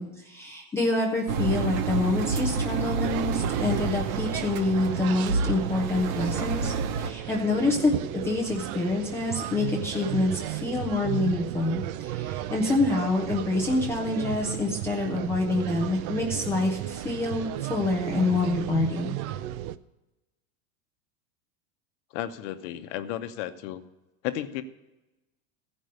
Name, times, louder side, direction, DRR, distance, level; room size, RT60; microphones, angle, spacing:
voice 1, 0.0-7.9 8.2-19.1, left 2 dB, 5° left, -1 dB, 0.3 m, -27 dB
Engine, 1.3-7.1, right 5 dB, 60° right, 1.1 m, -29 dB
sound 1, 3.0-19.8, right 13 dB, 80° right, 0.6 m, -34 dB
voice 2, 22.1-23.8 24.2-24.6, left 12 dB, 60° left, 10 dB, 0.9 m, -33 dB
15.5 x 5.3 x 6.5 m, 1.0 s
supercardioid pair, 175°, 42 cm